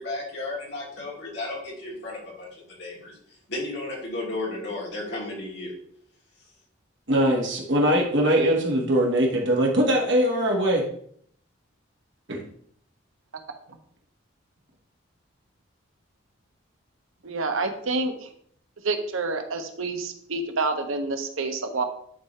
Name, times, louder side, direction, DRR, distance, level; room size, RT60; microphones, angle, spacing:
voice 1, 0.0-3.1 3.5-5.7, left 2 dB, 55° left, -4 dB, 3.1 m, -34 dB
voice 2, 7.1-10.8 12.3-12.4, right 1 dB, 60° right, -1 dB, 1.7 m, -21 dB
voice 3, 17.2-18.3 18.8-21.8, right 3 dB, 85° right, 6 dB, 1.0 m, -28 dB
10.0 x 4.8 x 3.3 m, 0.63 s
head